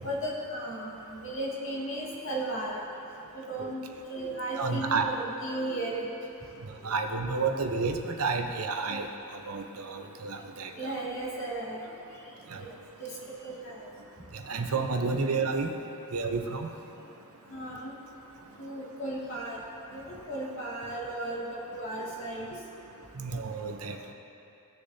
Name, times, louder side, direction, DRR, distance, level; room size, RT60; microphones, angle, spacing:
voice 1, 0.0-2.9 3.5-6.1 8.4-8.5 8.9-9.0 10.8-11.8 12.5-12.7 13.0-13.1 13.4-13.8 17.5-17.9 18.6-19.6 19.9-22.6, right 1 dB, 60° left, -6 dB, 2.3 m, -35 dB
voice 2, 4.6-5.1 6.8-9.1 9.5-11.0 12.5-12.6 14.3-15.7 16.1-16.7 23.2-24.1, right 4 dB, 75° right, 4 dB, 0.8 m, -30 dB
17.5 x 6.7 x 2.8 m, 2.8 s
head